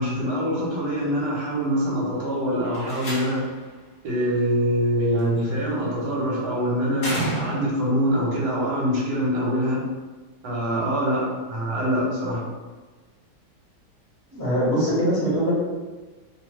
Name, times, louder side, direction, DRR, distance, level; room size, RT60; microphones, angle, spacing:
voice 1, 0.0-3.4 4.0-9.8 10.4-12.4, equal, 75° right, -4 dB, 1.4 m, -24 dB
Slam, 2.6-3.7 5.2-5.6 7.0-7.9, right 1 dB, 50° left, 0.7 m, -31 dB
voice 2, 14.3-15.5, equal, 10° right, -10 dB, 1.0 m, -22 dB
2.9 x 2.4 x 3.1 m, 1.3 s
omnidirectional pair, 1.9 m